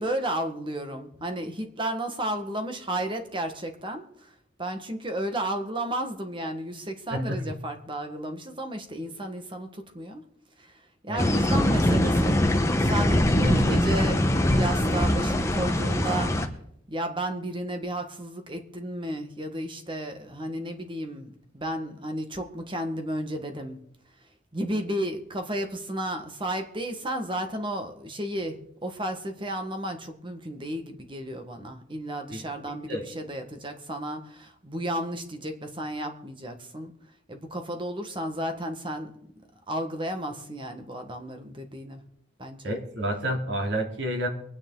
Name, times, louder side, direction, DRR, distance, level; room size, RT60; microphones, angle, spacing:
voice 1, 0.0-4.3 4.6-10.2 10.6-12.4 12.8-16.3 16.9-23.8 24.5-36.9 37.3-39.1 39.7-42.0 42.4-42.8, right 1 dB, 25° right, 6 dB, 1.5 m, -33 dB
voice 2, 7.1-7.4 11.1-12.0 13.1-13.8 32.3-33.1 42.6-44.3, equal, 65° right, 2 dB, 2.8 m, -30 dB
sound 1, 11.2-16.5, left 1 dB, 15° left, 1.1 m, -22 dB
24.0 x 9.6 x 3.9 m, 0.72 s
head